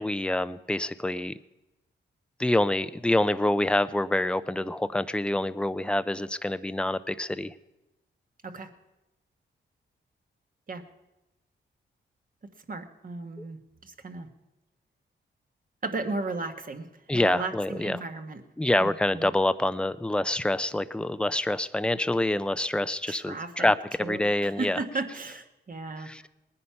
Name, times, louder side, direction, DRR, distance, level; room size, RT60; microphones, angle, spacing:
voice 1, 0.0-1.3 2.4-7.5 13.4-13.5 17.1-18.0 18.6-24.8 26.0-26.2, left 1 dB, 5° left, 14 dB, 0.6 m, -26 dB
voice 2, 12.7-14.3 15.8-18.4 18.8-19.3 23.1-23.7 24.0-26.1, right 3 dB, 45° right, 6 dB, 1.5 m, -35 dB
19.5 x 9.6 x 5.8 m, 0.98 s
cardioid pair, 70°, 20 cm